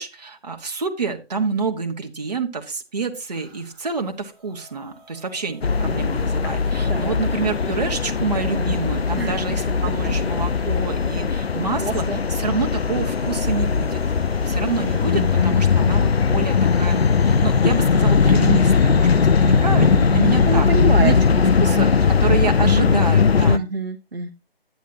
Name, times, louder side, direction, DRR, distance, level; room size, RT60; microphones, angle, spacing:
voice 1, 0.0-14.0 14.5-20.7 21.0-23.7, right 4 dB, 40° right, 4 dB, 1.3 m, -27 dB
sound 1, 3.3-19.9, right 3 dB, 5° right, 1.0 m, -48 dB
sound 2, 5.4-9.9 10.4-10.6 11.0-11.3 11.8-13.2 13.7-13.8 14.1-15.2 16.0-16.4 17.5-17.7 18.1-18.2 18.6-18.7 18.9-19.4 19.8-19.9, left 1 dB, 60° left, 2.6 m, -49 dB
sound 3, 5.6-23.6, left 5 dB, 80° left, 0.5 m, -19 dB
voice 2, 9.1-9.5 11.8-12.2 15.1-15.6 20.2-21.1 21.4-21.9 23.4-24.3, right 3 dB, 65° right, 4 dB, 1.1 m, -28 dB
10.0 x 9.4 x 2.8 m, 0.29 s
figure-of-eight pair, 150°, 31 cm